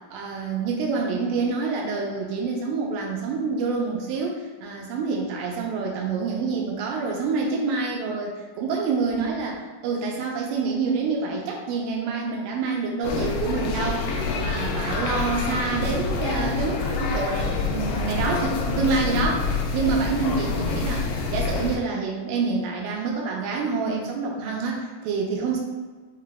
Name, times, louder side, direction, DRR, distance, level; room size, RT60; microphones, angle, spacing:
voice 1, 0.1-14.1 14.3-25.6, right 4 dB, 85° right, -1 dB, 2.3 m, -27 dB
sound 1, 13.0-21.8, left 4 dB, 80° left, 2.2 m, -26 dB
5.6 x 2.2 x 3.6 m, 1.4 s
omnidirectional pair, 4.0 m